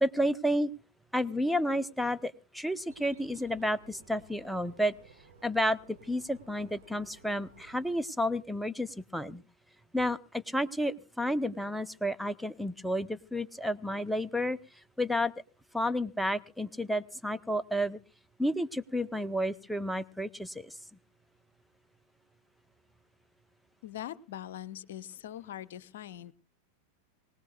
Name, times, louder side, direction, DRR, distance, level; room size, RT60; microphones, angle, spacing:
voice 1, 0.0-0.7 1.1-4.9 5.4-9.4 9.9-14.6 15.0-15.3 15.7-18.0 18.4-20.8, equal, ahead, 11 dB, 0.6 m, -31 dB
Bird, 2.9-8.0, right 3 dB, 75° right, 6.0 m, -57 dB
voice 2, 23.8-26.3, left 11 dB, 55° left, 18 dB, 0.7 m, -42 dB
24.5 x 18.0 x 2.3 m, 0.34 s
figure-of-eight pair, 90°, 0 cm